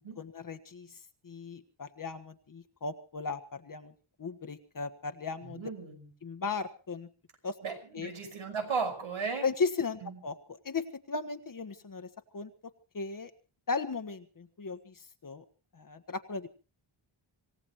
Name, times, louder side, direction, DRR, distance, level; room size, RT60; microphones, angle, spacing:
voice 1, 0.2-1.0 1.2-3.9 4.2-5.6 6.2-7.1 7.4-7.5 7.9-8.1 9.4-10.3 10.6-12.1 12.3-13.3 13.7-15.4 15.7-16.5, left 4 dB, 40° left, 9 dB, 1.4 m, -36 dB
voice 2, 5.4-6.1 7.6-9.5 10.0-10.2, right 5 dB, 80° right, 6 dB, 5.8 m, -36 dB
26.5 x 17.0 x 3.0 m, 0.35 s
wide cardioid pair, 130°, 48 cm